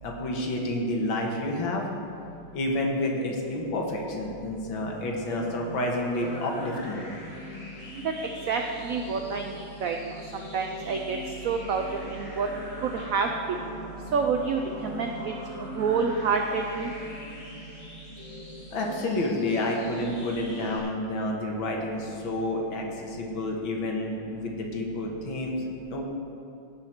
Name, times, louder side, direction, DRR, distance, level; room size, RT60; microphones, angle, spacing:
voice 1, 0.0-1.8 2.5-7.0 18.7-26.0, left 1 dB, 75° left, 0 dB, 2.1 m, -29 dB
sound 1, 4.8-20.8, left 1 dB, 20° left, 1.6 m, -42 dB
voice 2, 8.5-10.0 10.3-11.2 11.4-12.5 12.9-13.3 14.1-15.3 15.8-16.9, right 5 dB, 85° right, 4 dB, 0.7 m, -28 dB
17.0 x 5.8 x 4.4 m, 2.5 s
omnidirectional pair, 2.2 m